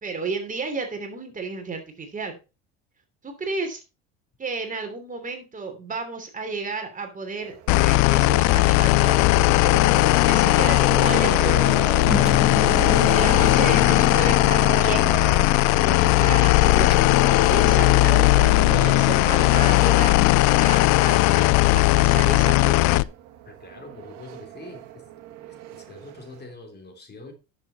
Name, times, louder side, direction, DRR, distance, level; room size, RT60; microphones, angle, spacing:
voice 1, 0.0-2.3 3.2-3.8 4.4-9.5 9.8-12.0 13.1-15.2 15.7-20.2 20.6-23.1, right 4 dB, 25° right, 3.0 m, -33 dB
sound 1, 7.4-26.5, right 12 dB, 65° right, 1.8 m, -36 dB
sound 2, 7.7-23.0, left 22 dB, 65° left, 0.5 m, -18 dB
Engine, 12.0-17.9, equal, ahead, 1.1 m, -32 dB
voice 2, 23.5-25.1 25.7-27.3, left 2 dB, 30° left, 3.5 m, -43 dB
10.5 x 7.0 x 4.1 m
supercardioid pair, 95°, 31 cm